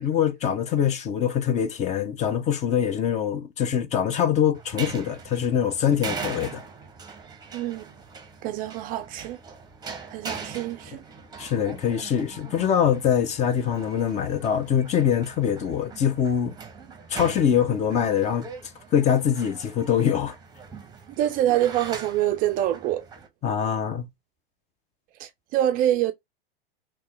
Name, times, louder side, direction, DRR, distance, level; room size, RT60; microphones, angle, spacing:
voice 1, 0.0-6.6 11.4-16.6 17.1-18.5 18.9-20.3 23.4-24.1, left 8 dB, 25° left, 0.6 m, -24 dB
sound 1, 4.5-23.3, right 5 dB, 15° right, 0.8 m, -41 dB
voice 2, 7.5-7.9 8.4-9.4 10.1-11.0 21.2-23.1 25.2-26.1, right 12 dB, 30° right, 0.4 m, -25 dB
3.2 x 3.0 x 3.2 m
hypercardioid pair, 110°, 29 cm